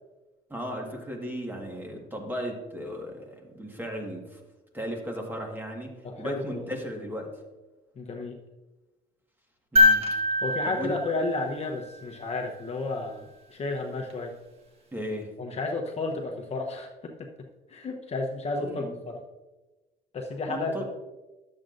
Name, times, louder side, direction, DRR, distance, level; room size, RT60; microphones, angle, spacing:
voice 1, 0.5-4.4 4.7-7.3 9.7-10.1 10.6-11.0 14.9-15.3 18.6-19.0 20.5-20.8, equal, 10° right, 1 dB, 1.6 m, -36 dB
voice 2, 6.0-6.7 8.0-8.4 10.4-14.3 15.4-17.3 17.7-19.2 20.1-20.8, left 3 dB, 40° left, 2 dB, 0.9 m, -32 dB
sound 1, 9.8-12.1 14.1-14.2, left 2 dB, 35° right, 1.4 m, -24 dB
12.0 x 7.6 x 2.6 m, 1.1 s
cardioid pair, 110°, 17 cm